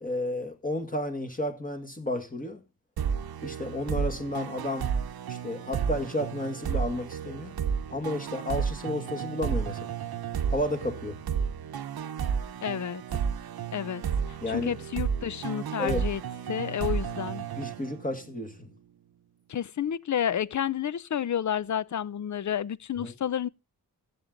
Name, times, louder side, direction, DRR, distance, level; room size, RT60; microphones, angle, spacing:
voice 1, 0.0-2.6 3.4-4.9 5.3-7.6 7.9-10.0 10.5-11.2 14.4-14.8 15.8-16.0 17.6-18.7 23.0-23.1, left 1 dB, 25° left, 1.9 m, -32 dB
sound 1, 3.0-18.4, right 7 dB, 80° right, 0.9 m, -32 dB
voice 2, 12.6-13.0 13.7-14.0 14.5-16.2 16.5-17.4 19.5-23.5, left 9 dB, 50° left, 0.6 m, -30 dB
14.5 x 8.7 x 3.9 m
wide cardioid pair, 100°, 36 cm